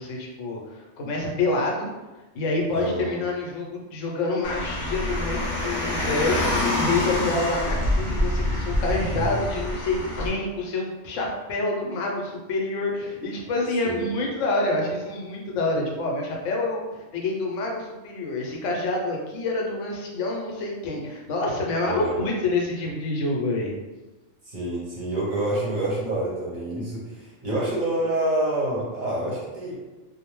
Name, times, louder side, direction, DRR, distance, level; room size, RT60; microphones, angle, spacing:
voice 1, 0.0-1.9 2.3-23.7, left 2 dB, 80° left, -1 dB, 0.9 m, -27 dB
voice 2, 2.7-3.2 9.1-9.2 13.8-14.0 21.9-22.2 24.5-29.7, right 1 dB, 50° right, -6 dB, 0.7 m, -27 dB
Car, 4.4-10.3, left 1 dB, 50° left, 0.6 m, -26 dB
2.5 x 2.0 x 3.0 m, 1.1 s
omnidirectional pair, 1.3 m